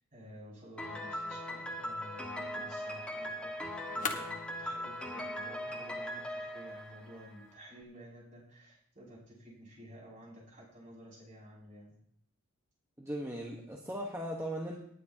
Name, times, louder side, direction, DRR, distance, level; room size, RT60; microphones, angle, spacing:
voice 1, 0.0-3.5 3.8-11.9, equal, 35° right, -6 dB, 6.2 m, -52 dB
Piano, 0.8-7.6, equal, 5° left, 1.3 m, -40 dB
sound 1, 1.6-7.6, left 5 dB, 40° left, 1.3 m, -47 dB
voice 2, 13.0-14.8, equal, 10° right, -1 dB, 1.2 m, -38 dB
19.5 x 9.7 x 2.9 m, 0.70 s
head